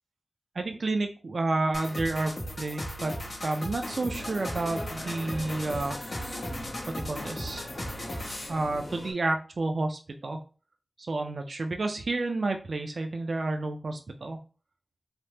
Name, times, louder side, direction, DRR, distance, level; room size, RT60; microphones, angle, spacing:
voice 1, 0.6-3.1 3.4-6.0 7.1-7.7 8.5-10.4 11.1-14.4, right 2 dB, 75° right, 5 dB, 0.4 m, -30 dB
sound 1, 1.7-8.5, equal, 80° left, 0.9 m, -37 dB
sound 2, 4.1-9.1, left 1 dB, 60° left, 1.0 m, -41 dB
3.3 x 2.1 x 2.8 m, 0.34 s
wide cardioid pair, 85°, 0 cm